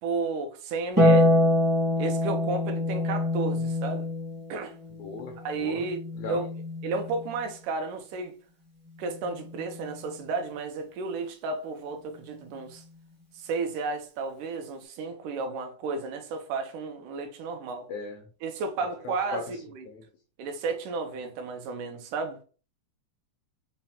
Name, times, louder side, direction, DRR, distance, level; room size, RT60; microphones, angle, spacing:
voice 1, 0.0-1.4 2.0-4.1 4.5-4.8 5.4-6.0 6.3-6.5 6.8-8.4 9.0-12.8 13.3-17.9 18.4-19.4 19.7-19.8 20.4-22.4, right 4 dB, 80° right, 2.1 m, -32 dB
Harp, 1.0-7.5 9.1-10.1, left 1 dB, 15° right, 0.6 m, -26 dB
voice 2, 5.0-5.8 6.2-6.4 17.9-18.3 19.0-19.6 19.9-20.0, left 4 dB, 85° left, 1.6 m, -38 dB
5.6 x 2.1 x 2.7 m
omnidirectional pair, 3.7 m